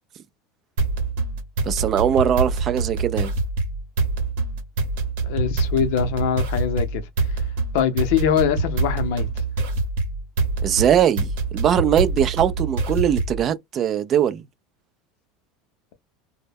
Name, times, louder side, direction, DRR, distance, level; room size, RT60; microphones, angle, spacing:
sound 1, 0.8-13.5, right 3 dB, 75° right, 0.8 m, -25 dB
voice 1, 1.6-3.3 10.6-14.4, right 9 dB, 40° right, 0.3 m, -21 dB
voice 2, 5.2-7.0 7.7-9.3, left 8 dB, 70° left, 0.6 m, -22 dB
2.1 x 2.0 x 3.3 m
supercardioid pair, 105°, 0 cm